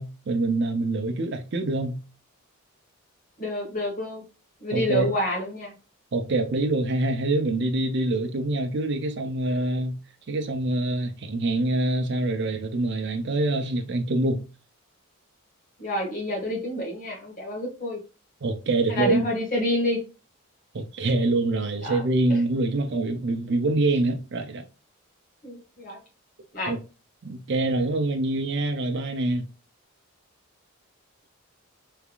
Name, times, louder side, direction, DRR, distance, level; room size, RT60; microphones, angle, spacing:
voice 1, 0.0-2.0 4.7-5.1 6.1-10.0 10.3-14.4 18.4-19.3 20.7-24.6 26.7-26.8 27.2-29.4, right 2 dB, 55° right, 0.5 m, -25 dB
voice 2, 3.4-4.2 4.6-5.7 15.8-18.0 18.9-20.0 21.8-22.4 25.4-26.0 26.5-26.7, left 1 dB, 40° left, 1.5 m, -28 dB
3.4 x 3.3 x 2.3 m
head